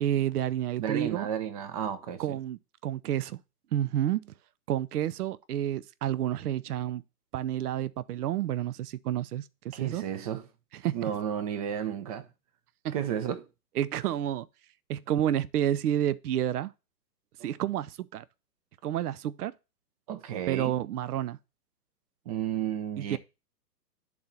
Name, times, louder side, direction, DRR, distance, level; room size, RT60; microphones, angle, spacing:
voice 1, 0.0-1.3 2.2-3.4 3.7-4.3 4.7-7.0 7.3-10.0 10.8-10.9 12.8-13.0 13.8-14.5 14.9-16.7 17.4-18.2 18.8-19.5 20.5-21.4 23.0-23.2, right 11 dB, 65° right, 0.6 m, -30 dB
voice 2, 0.8-2.4 9.7-10.4 10.9-12.3 12.9-13.5 17.4-17.5 20.1-20.7 22.3-23.2, right 9 dB, 25° right, 0.6 m, -32 dB
10.0 x 4.2 x 4.3 m
hypercardioid pair, 130°, 49 cm